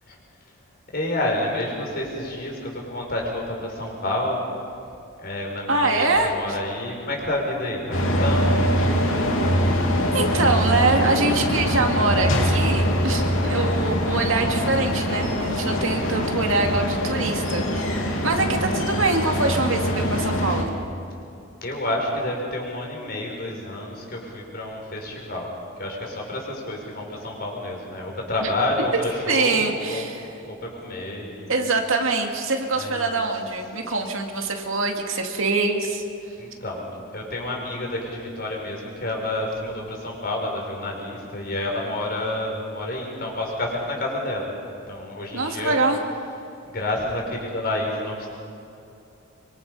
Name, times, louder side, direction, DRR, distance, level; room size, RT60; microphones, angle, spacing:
voice 1, 0.9-4.5 5.2-8.6 21.6-25.5 25.8-30.0 30.4-31.5 32.8-33.1 36.4-36.8 37.1-44.5 44.9-45.8 46.7-48.3, left 1 dB, 45° left, -1 dB, 5.3 m, -29 dB
voice 2, 5.7-6.6 10.1-20.7 28.4-28.5 29.3-30.3 31.5-36.0 45.3-46.0, right 3 dB, 75° right, 3 dB, 2.3 m, -24 dB
sound 1, 7.9-20.6, equal, 70° left, 3.1 m, -23 dB
25.0 x 25.0 x 5.6 m, 2.7 s
head